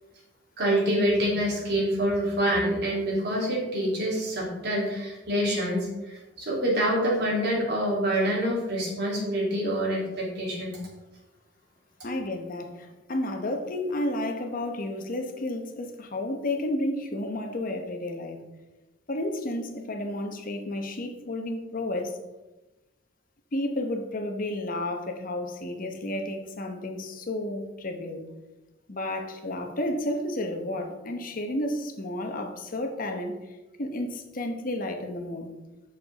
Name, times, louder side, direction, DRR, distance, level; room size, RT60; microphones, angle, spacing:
voice 1, 0.6-10.8, equal, 65° right, -4 dB, 3.1 m, -26 dB
voice 2, 12.0-18.4 19.1-22.2 23.5-28.2 28.9-35.5, left 1 dB, 50° left, 5 dB, 1.0 m, -32 dB
7.6 x 6.7 x 4.0 m, 1.1 s
head